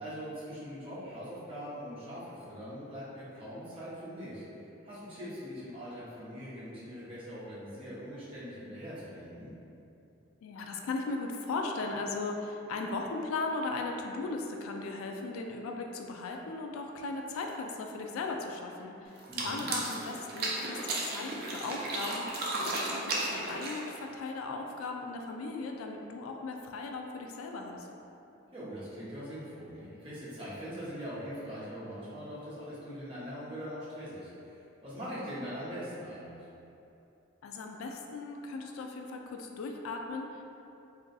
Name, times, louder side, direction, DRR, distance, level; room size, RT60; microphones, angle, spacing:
voice 1, 0.0-4.4 4.8-9.5 19.3-19.7 28.5-34.5 34.8-36.5, equal, 25° right, -10 dB, 0.8 m, -42 dB
voice 2, 10.4-27.9 37.4-40.4, left 3 dB, 85° left, 3 dB, 0.3 m, -37 dB
sound 1, 19.2-24.0, right 2 dB, 45° right, 0.4 m, -34 dB
2.5 x 2.2 x 3.9 m, 2.8 s
head